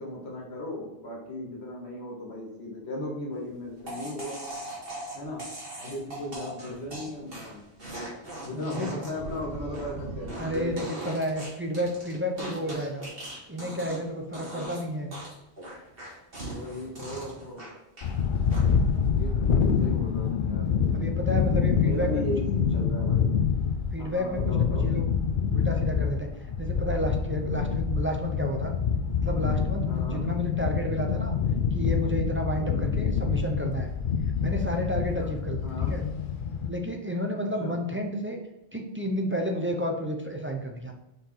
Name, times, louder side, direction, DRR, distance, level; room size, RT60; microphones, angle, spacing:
voice 1, 0.0-4.4 5.1-5.4 5.8-7.6 8.4-10.9 16.4-17.7 19.1-20.7 21.7-23.4 24.0-24.9 29.8-30.3 32.6-32.9 35.1-35.3 35.6-36.0 37.6-37.8, left 1 dB, 85° left, -2 dB, 2.0 m, -36 dB
sound 1, 3.9-14.1 14.3-14.8 15.1-18.1 18.5-18.9, right 1 dB, 60° right, 2.2 m, -39 dB
voice 2, 8.5-9.1 10.4-13.1 13.5-15.1 20.9-22.2 23.9-25.1 25.5-26.3 26.6-28.7 29.2-31.4 31.7-33.9 34.4-36.0 36.7-38.4 38.7-40.9, equal, 15° right, 2 dB, 0.5 m, -31 dB
sound 2, 18.0-36.7, left 6 dB, 60° left, 0.7 m, -26 dB
5.2 x 4.6 x 3.9 m, 0.91 s
omnidirectional pair, 1.1 m